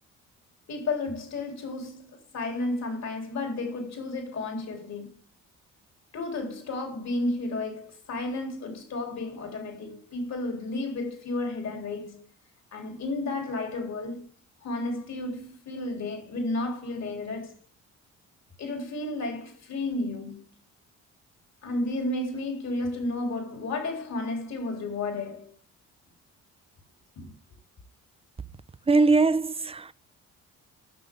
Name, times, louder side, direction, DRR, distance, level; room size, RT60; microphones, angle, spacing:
voice 1, 0.7-5.1 6.1-12.2 12.7-14.2 14.6-17.6 18.6-20.5 21.6-25.5 27.2-27.3, left 2 dB, 60° left, 3.5 m, -32 dB
voice 2, 28.9-29.9, right 3 dB, 20° right, 0.6 m, -21 dB
13.5 x 6.4 x 3.7 m
cardioid pair, 90°, 30 cm